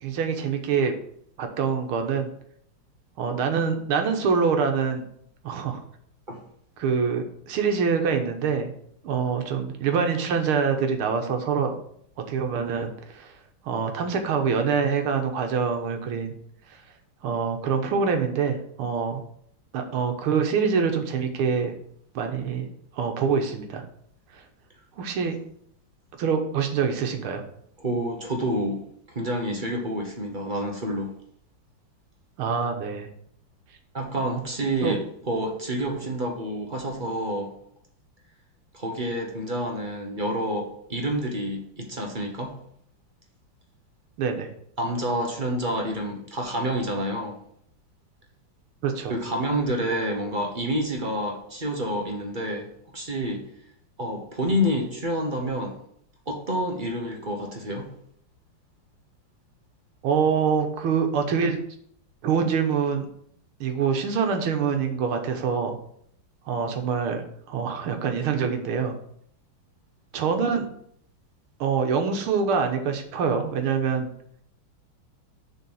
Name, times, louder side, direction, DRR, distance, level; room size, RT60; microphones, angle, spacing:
voice 1, 0.0-0.9 1.4-2.3 3.2-5.0 5.4-5.8 6.8-8.7 9.0-11.8 12.3-13.3 13.7-16.3 17.2-19.2 19.7-21.7 22.2-22.7 22.9-23.8 25.0-25.4 26.2-27.4 32.4-33.1 34.8-35.0 44.2-44.5 48.8-49.1 60.0-61.6 62.2-63.1 63.6-65.8 66.5-69.0 70.1-70.7 71.6-74.1, right 6 dB, 90° right, 5 dB, 2.0 m, -25 dB
voice 2, 27.8-28.8 29.1-31.1 33.9-37.5 38.7-42.6 44.8-47.4 49.1-53.5 54.0-55.8 56.3-57.9, equal, 30° right, 1 dB, 1.0 m, -28 dB
6.9 x 4.5 x 6.3 m, 0.67 s
omnidirectional pair, 2.3 m